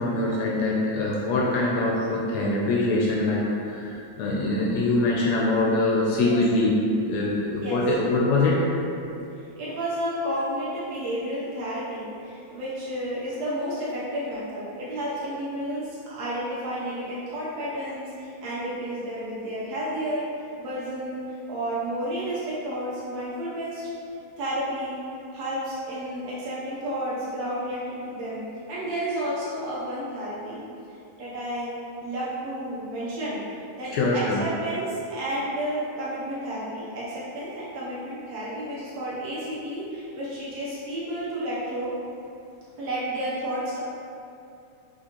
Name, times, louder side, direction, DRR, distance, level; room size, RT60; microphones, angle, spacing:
voice 1, 0.0-6.8 7.1-8.6 33.9-34.4, left 2 dB, 80° left, -4 dB, 1.5 m, -23 dB
voice 2, 9.6-20.3 20.6-23.9 24.4-25.0 25.3-28.4 28.7-30.6 30.9-31.7 32.0-41.9 42.8-43.8, right 1 dB, 70° right, -9 dB, 1.7 m, -31 dB
6.7 x 2.4 x 2.9 m, 2.6 s
omnidirectional pair, 3.4 m